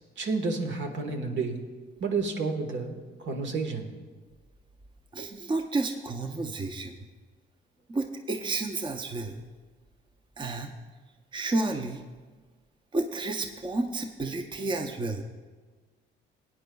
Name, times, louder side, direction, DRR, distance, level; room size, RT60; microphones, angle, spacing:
voice 1, 0.2-1.6 2.0-3.0 3.2-3.9, right 4 dB, 65° right, 4 dB, 1.4 m, -30 dB
voice 2, 5.1-7.0 7.9-9.4 10.4-10.7 11.3-12.0 12.9-15.2, right 2 dB, 25° right, 5 dB, 0.7 m, -31 dB
18.5 x 9.3 x 2.3 m, 1.4 s
cardioid pair, 90°, 20 cm